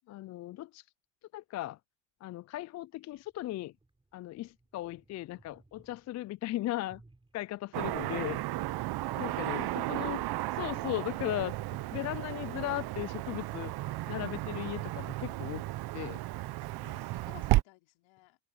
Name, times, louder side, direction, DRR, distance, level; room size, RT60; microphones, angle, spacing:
voice 1, 0.1-0.8 1.3-1.8 2.2-3.7 4.1-7.0 7.3-8.4 9.1-10.2 10.5-11.5 11.9-13.7 14.1-15.7 15.9-16.2, left 15 dB, 35° left, 0.4 m, -37 dB
sound 1, 3.1-12.0, right 2 dB, 10° right, 5.6 m, -66 dB
Car passing by / Traffic noise roadway noise, 7.7-17.6, right 17 dB, 55° right, 1.0 m, -34 dB
voice 2, 9.3-10.0 16.8-18.4, left 22 dB, 70° left, 4.8 m, -56 dB
supercardioid pair, 85°, 47 cm